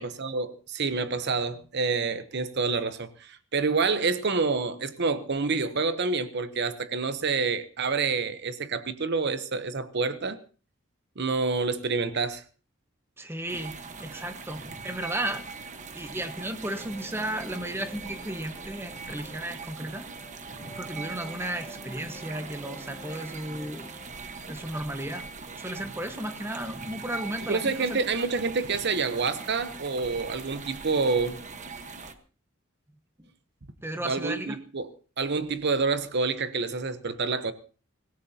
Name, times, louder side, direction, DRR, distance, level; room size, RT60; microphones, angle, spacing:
voice 1, 0.0-10.4 11.2-12.4 27.5-31.4 34.0-34.9 35.2-37.5, right 4 dB, 55° right, 0.9 m, -28 dB
voice 2, 13.2-15.4 15.9-20.1 20.7-23.9 24.5-25.3 25.6-28.0 33.2-33.3 33.8-34.6, right 1 dB, 10° right, 1.2 m, -34 dB
sound 1, 13.5-32.1, right 4 dB, 35° right, 1.3 m, -41 dB
sound 2, 16.2-24.1, right 1 dB, 15° left, 1.9 m, -48 dB
24.5 x 16.5 x 2.8 m
head